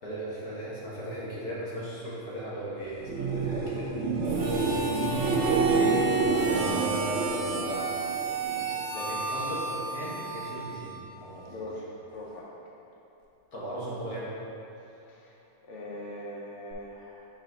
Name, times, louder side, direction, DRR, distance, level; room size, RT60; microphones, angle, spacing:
voice 1, 0.0-3.9 5.5-5.9 6.4-7.9 8.6-11.6 13.5-14.3, right 1 dB, 45° left, -7 dB, 1.7 m, -37 dB
sound 1, 3.0-8.7 9.1-9.7 16.7-16.8, right 3 dB, 80° right, 0.6 m, -28 dB
Harmonica, 4.2-11.2, right 4 dB, 60° right, 0.9 m, -32 dB
voice 2, 11.5-12.5 15.1-15.3 15.6-17.3, left 1 dB, 75° left, -4 dB, 0.6 m, -41 dB
6.7 x 4.1 x 3.9 m, 2.9 s
omnidirectional pair, 2.4 m